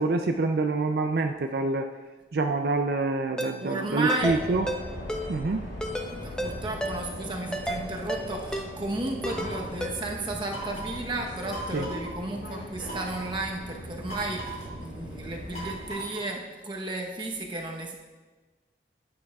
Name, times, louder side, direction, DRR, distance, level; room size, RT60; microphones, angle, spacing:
voice 1, 0.0-1.9 2.3-4.7 5.3-5.7 11.7-11.9, right 3 dB, 65° right, 5 dB, 0.4 m, -26 dB
Ringtone, 3.4-3.5 4.1-4.4 4.7-4.8 5.1-5.2 5.8-6.1 6.4-6.5 6.8-6.9 7.5-7.8 8.1-8.2 8.5-8.6 9.2-9.5 9.8-9.9, right 1 dB, 5° left, 0.6 m, -30 dB
voice 2, 3.6-4.4 6.1-18.0, right 2 dB, 25° right, 1 dB, 0.9 m, -33 dB
sound 1, 4.2-15.9, equal, 70° left, 3.3 m, -39 dB
sound 2, 9.2-9.8 10.5-11.0 11.5-12.1 12.8-13.3 14.1-14.7 15.5-16.4, right 2 dB, 40° left, 3.4 m, -39 dB
14.0 x 8.7 x 2.4 m, 1.3 s
head